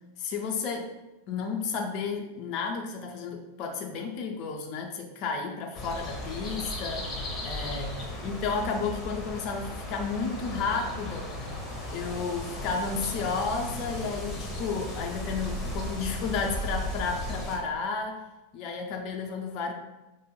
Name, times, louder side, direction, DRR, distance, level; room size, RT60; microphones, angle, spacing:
voice 1, 0.2-0.9 1.3-7.1 7.4-8.0 8.2-11.3 11.9-18.2 18.5-19.7, left 5 dB, 40° left, 2 dB, 0.4 m, -32 dB
sound 1, 5.7-17.6, left 1 dB, 15° left, 0.8 m, -36 dB
4.9 x 2.2 x 3.1 m, 1.0 s
figure-of-eight pair, 90°, 0 cm